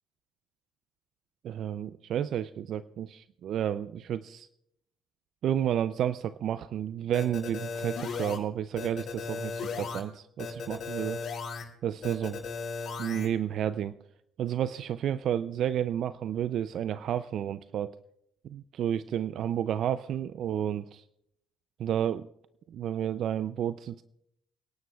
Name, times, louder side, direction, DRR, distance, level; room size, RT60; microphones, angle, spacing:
voice 1, 1.4-4.5 5.4-11.2 11.8-12.4 13.0-13.9 14.4-17.9 18.4-21.0 21.8-22.3 22.7-24.0, right 10 dB, 60° right, 14 dB, 0.4 m, -31 dB
sound 1, 7.1-8.4 8.8-10.0 10.4-11.6 12.0-13.3, left 5 dB, 55° left, 5.5 m, -36 dB
29.0 x 11.0 x 2.3 m, 0.79 s
cardioid pair, 95°, 0 cm